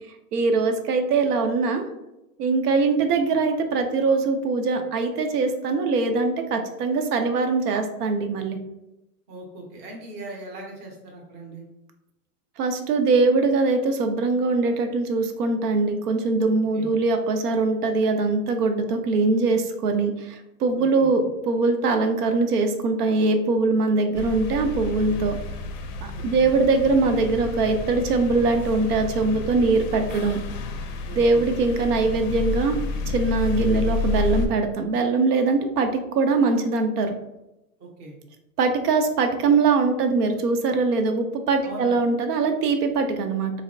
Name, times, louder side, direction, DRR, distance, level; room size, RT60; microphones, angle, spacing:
voice 1, 0.3-1.8 2.4-8.6 12.6-25.4 26.0-30.4 31.2-32.8 33.1-37.2 38.6-43.5, right 3 dB, 70° right, 6 dB, 0.6 m, -22 dB
voice 2, 9.3-11.6 16.7-16.9 20.7-21.1 26.1-26.5 31.0-31.5 37.8-38.2 41.6-42.0, right 1 dB, 20° right, -1 dB, 0.6 m, -40 dB
sound 1, 24.2-34.5, left 4 dB, 55° left, 0.5 m, -30 dB
3.3 x 2.1 x 2.5 m, 0.91 s
hypercardioid pair, 125°, 48 cm